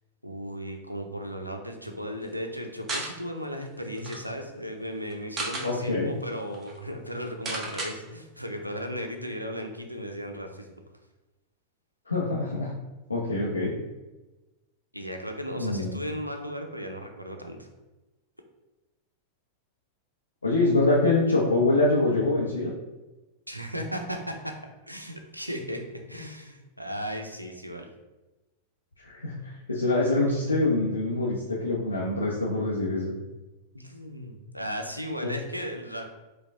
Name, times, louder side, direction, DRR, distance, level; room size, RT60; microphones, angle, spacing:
voice 1, 0.2-10.8 14.9-17.7 23.5-24.6 24.9-25.8 26.1-27.9 33.7-36.0, equal, 90° right, 4 dB, 0.5 m, -36 dB
sound 1, 2.9-3.1 3.6-3.7 3.9-4.2 5.1-5.7 6.2-6.3 6.5-6.7 7.5-7.9, right 2 dB, 25° right, 0.8 m, -33 dB
voice 2, 5.6-6.1 12.1-12.7 13.1-13.7 15.6-16.0 20.4-22.7 29.0-33.1 35.2-35.3, left 2 dB, 80° left, -5 dB, 0.6 m, -25 dB
4.6 x 2.3 x 3.6 m, 1.1 s
figure-of-eight pair, 90°, 0 cm